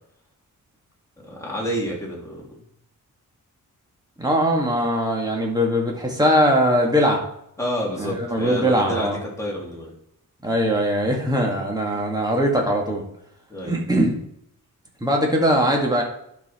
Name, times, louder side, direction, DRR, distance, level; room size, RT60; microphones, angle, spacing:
voice 1, 1.3-2.5 7.6-9.9 13.5-13.8, equal, 10° left, -4 dB, 3.0 m, -28 dB
voice 2, 4.2-7.2 8.0-9.2 10.4-13.0 13.6-14.1 15.0-16.0, equal, 10° right, 0 dB, 2.0 m, -21 dB
11.0 x 5.9 x 4.4 m, 0.74 s
wide cardioid pair, 150°, 33 cm